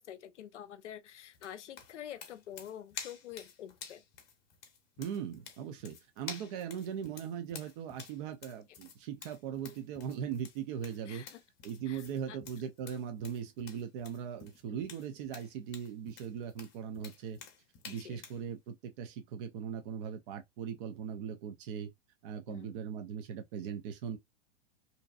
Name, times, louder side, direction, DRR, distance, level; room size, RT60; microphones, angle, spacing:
voice 1, 0.0-4.0 11.1-11.4 11.9-12.4 14.7-14.8 17.9-18.2 22.5-22.8, left 10 dB, 75° left, 0.5 m, -47 dB
sound 1, 1.3-18.4, left 7 dB, 30° left, 0.8 m, -50 dB
voice 2, 5.0-11.2 11.6-17.4 17.8-21.9 22.2-24.2, right 8 dB, 45° right, 0.5 m, -39 dB
2.6 x 2.2 x 2.4 m
figure-of-eight pair, 100°, 36 cm